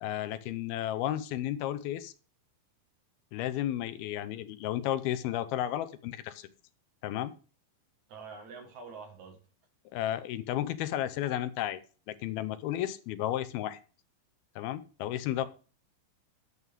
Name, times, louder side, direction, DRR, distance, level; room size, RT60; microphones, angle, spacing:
voice 1, 0.0-2.1 3.3-6.5 7.0-7.3 9.9-11.8 12.1-13.8 14.6-15.5, left 12 dB, 85° left, 2.7 m, -33 dB
voice 2, 8.1-9.4 15.4-15.5, right 5 dB, 55° right, 2.8 m, -46 dB
11.0 x 8.2 x 3.6 m
omnidirectional pair, 4.3 m